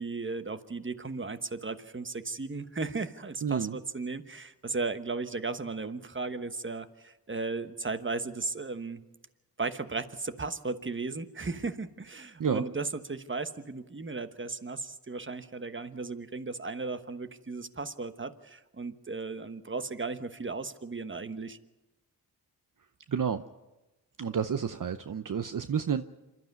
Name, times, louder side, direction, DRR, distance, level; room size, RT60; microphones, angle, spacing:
voice 1, 0.0-9.0 9.6-21.6, right 3 dB, 30° right, 11 dB, 1.2 m, -36 dB
voice 2, 3.4-3.8 12.4-12.6 23.1-23.4 24.2-26.0, right 7 dB, 60° right, 10 dB, 0.8 m, -30 dB
26.5 x 12.5 x 9.4 m, 1.1 s
wide cardioid pair, 60°, 37 cm